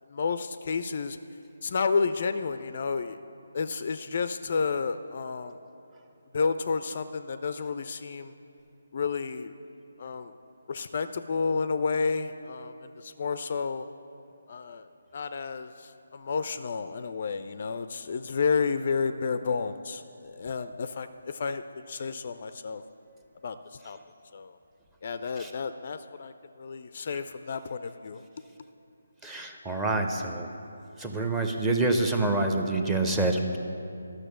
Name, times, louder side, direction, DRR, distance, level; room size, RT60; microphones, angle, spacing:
voice 1, 0.1-1.2 1.6-3.2 3.5-5.6 6.3-8.3 8.9-9.5 10.0-10.3 10.7-13.9 14.5-14.9 15.1-22.8 23.4-24.0 24.3-24.6 25.0-28.2, left 5 dB, 40° left, 11 dB, 0.3 m, -31 dB
voice 2, 29.2-30.5 31.0-33.6, right 2 dB, 10° right, 3 dB, 0.7 m, -27 dB
12.0 x 6.3 x 7.4 m, 2.7 s
figure-of-eight pair, 150°, 0 cm